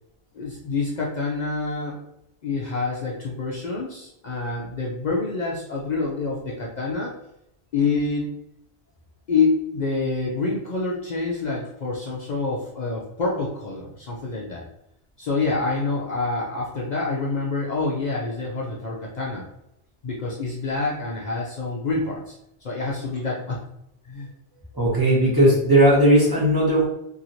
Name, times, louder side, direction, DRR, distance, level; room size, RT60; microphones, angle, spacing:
voice 1, 0.3-2.0 2.4-7.1 7.7-8.3 9.3-14.7 15.2-19.5 20.0-22.3 22.6-23.6 24.0-24.3, left 3 dB, 50° left, -3 dB, 0.6 m, -27 dB
voice 2, 24.7-26.8, right 1 dB, 20° right, -6 dB, 0.9 m, -17 dB
2.9 x 2.7 x 2.6 m, 0.79 s
omnidirectional pair, 1.1 m